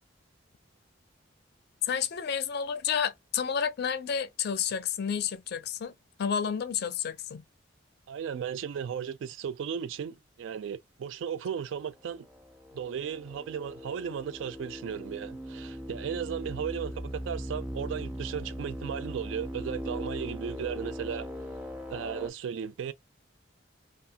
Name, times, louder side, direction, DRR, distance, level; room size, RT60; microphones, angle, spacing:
voice 1, 1.8-5.9 6.2-7.4, left 7 dB, 55° left, 0.4 m, -30 dB
voice 2, 8.1-12.3 12.7-21.3 21.9-22.9, right 7 dB, 75° right, 0.3 m, -35 dB
sound 1, 12.2-22.3, equal, 10° right, 0.4 m, -39 dB
2.7 x 2.3 x 2.7 m
head